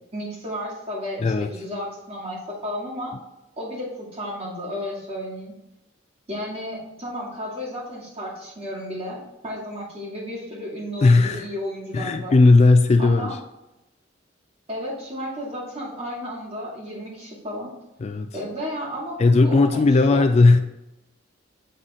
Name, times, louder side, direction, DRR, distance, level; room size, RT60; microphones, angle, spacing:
voice 1, 0.1-3.1 3.6-5.5 6.3-12.4 13.0-13.4 14.7-17.7 18.3-19.9 20.1-20.2, equal, 35° right, -5 dB, 2.4 m, -33 dB
voice 2, 11.0-11.4 11.9-13.3 18.0-18.3 19.2-20.6, left 3 dB, 35° left, 8 dB, 0.3 m, -16 dB
7.7 x 4.1 x 3.7 m, 0.94 s
head